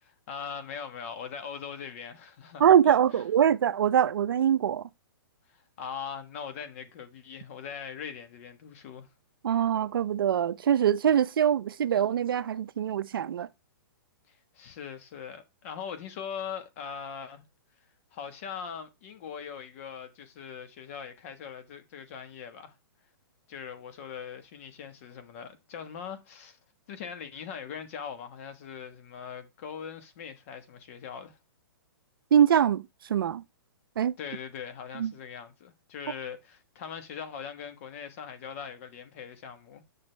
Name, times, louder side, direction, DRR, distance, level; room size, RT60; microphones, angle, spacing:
voice 1, 0.0-3.2 5.8-9.1 14.3-17.4 18.1-22.7 23.5-26.6 26.9-31.4 34.2-39.8, left 7 dB, 35° left, 1.3 m, -41 dB
voice 2, 2.6-4.8 9.4-13.5 32.3-32.8 33.1-33.4 34.0-34.1 35.0-35.1, right 9 dB, 65° right, 0.6 m, -23 dB
9.1 x 6.2 x 3.3 m
hypercardioid pair, 165°, 12 cm